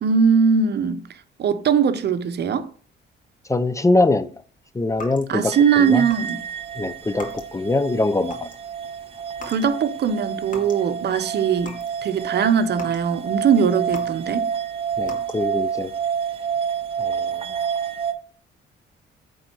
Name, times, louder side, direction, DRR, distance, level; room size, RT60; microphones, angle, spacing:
voice 1, 0.0-1.0 1.4-2.7 5.3-6.4 9.5-11.8 12.0-14.5, right 6 dB, 60° right, 0.8 m, -20 dB
voice 2, 3.5-4.3 4.7-6.0 6.8-8.5 15.0-15.9 17.0-17.4, left 2 dB, 15° left, 0.5 m, -23 dB
sound 1, 4.9-5.6 6.0-6.3 6.6-7.7 8.1-8.7 9.3-9.7 10.0-10.9 11.2-12.0 12.3-14.5 15.0-15.6, left 2 dB, 40° left, 2.0 m, -40 dB
sound 2, 5.5-18.1, right 7 dB, 30° right, 1.0 m, -29 dB
8.7 x 3.9 x 4.5 m
cardioid pair, 90°, 20 cm